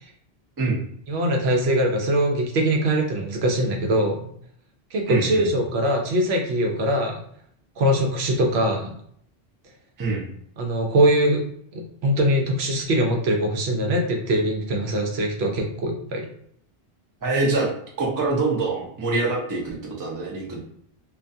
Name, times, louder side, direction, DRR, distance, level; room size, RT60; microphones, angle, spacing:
voice 1, 1.1-4.3 4.9-7.2 7.8-8.9 10.6-11.4 11.7-16.3, right 1 dB, 80° right, 1 dB, 0.8 m, -22 dB
voice 2, 5.1-5.5 10.0-10.2 17.2-17.7 18.0-20.6, right 3 dB, 25° right, -2 dB, 0.5 m, -25 dB
2.3 x 2.3 x 2.6 m, 0.65 s
omnidirectional pair, 1.1 m